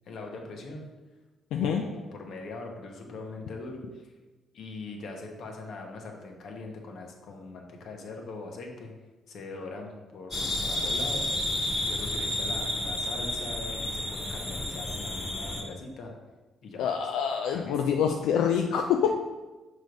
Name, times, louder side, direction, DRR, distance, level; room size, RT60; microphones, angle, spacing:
voice 1, 0.1-0.9 1.5-4.1 4.5-8.9 9.3-11.3 11.8-16.1 16.6-16.9 17.5-17.8, left 3 dB, 65° left, 2 dB, 1.1 m, -41 dB
voice 2, 1.5-1.8 16.8-19.1, left 7 dB, 90° left, 3 dB, 0.4 m, -26 dB
sound 1, 10.3-15.6, left 1 dB, 40° left, 1.5 m, -31 dB
6.3 x 3.2 x 5.2 m, 1.2 s
cardioid pair, 90°, 0 cm